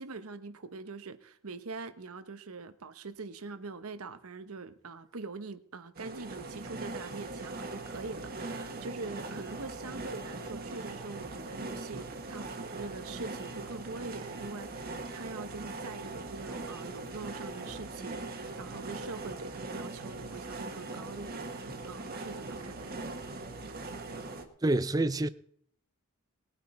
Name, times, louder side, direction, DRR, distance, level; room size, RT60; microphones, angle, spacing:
voice 1, 0.0-23.1, right 3 dB, 75° right, 1.0 m, -43 dB
sound 1, 6.0-24.4, right 2 dB, 40° right, 1.4 m, -41 dB
voice 2, 24.6-25.3, right 2 dB, 15° right, 0.4 m, -27 dB
20.0 x 9.1 x 4.3 m
head